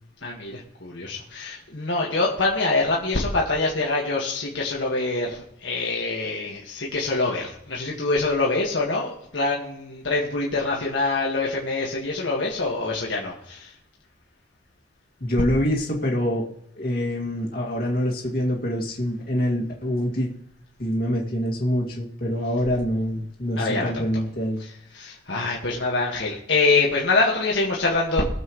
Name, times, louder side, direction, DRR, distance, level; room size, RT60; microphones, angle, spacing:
voice 1, 0.2-13.7 23.6-24.2 24.6-28.3, left 3 dB, 75° left, -3 dB, 1.8 m, -25 dB
voice 2, 15.2-16.5 16.8-20.3 20.8-24.6, equal, 50° left, -2 dB, 2.3 m, -25 dB
22.5 x 7.6 x 3.2 m, 0.76 s
head